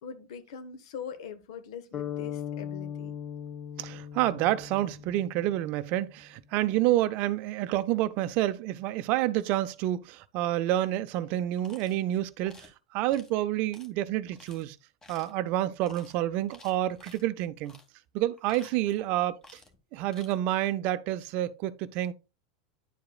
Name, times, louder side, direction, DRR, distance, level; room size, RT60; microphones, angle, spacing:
voice 1, 0.0-3.1, left 7 dB, 65° left, 1.1 m, -42 dB
sound 1, 1.9-5.9, left 9 dB, 35° left, 1.1 m, -39 dB
voice 2, 3.8-14.8 15.1-17.8 18.1-19.4 19.9-22.1, right 14 dB, 50° right, 0.5 m, -28 dB
sound 2, 11.6-12.0 12.5-12.7 13.1-13.3 13.7-13.9 14.3-14.6 15.0-15.4 15.8-16.1 16.5-17.2 17.6-17.9 18.3-19.1 19.4-19.8 20.0-20.3, left 2 dB, 15° left, 1.6 m, -53 dB
10.0 x 4.7 x 2.3 m
hypercardioid pair, 95°, 3 cm